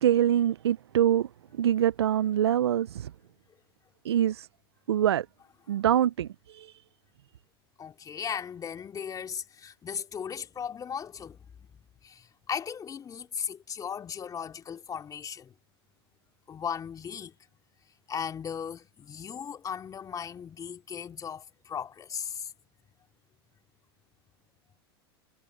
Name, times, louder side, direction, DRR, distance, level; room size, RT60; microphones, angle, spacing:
voice 1, 0.0-3.1 4.0-4.5 4.9-5.3 5.7-6.8, right 10 dB, 80° right, 0.8 m, -25 dB
voice 2, 7.8-11.4 12.0-15.5 16.5-17.4 18.1-22.5, left 7 dB, 25° left, 3.0 m, -37 dB
hypercardioid pair, 95°, 13 cm